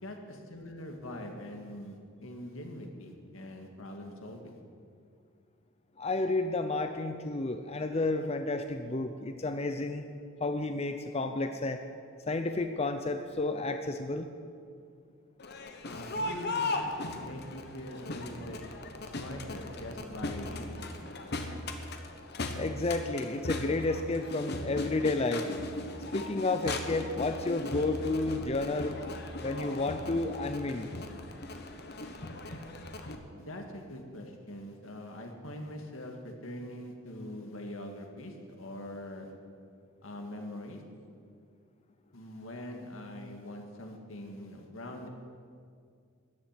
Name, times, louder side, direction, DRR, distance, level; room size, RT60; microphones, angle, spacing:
voice 1, 0.0-4.6 15.8-18.6 19.0-20.9 33.4-39.3 40.0-40.8 42.1-45.1, left 1 dB, 80° left, 3 dB, 1.9 m, -43 dB
voice 2, 6.0-10.0 10.4-11.8 12.3-14.3 22.5-25.5 26.1-29.0 29.4-30.9, left 2 dB, 30° left, 7 dB, 0.6 m, -31 dB
Crowd, 15.4-33.2, left 2 dB, 55° left, 1.1 m, -38 dB
14.0 x 7.3 x 9.7 m, 2.2 s
head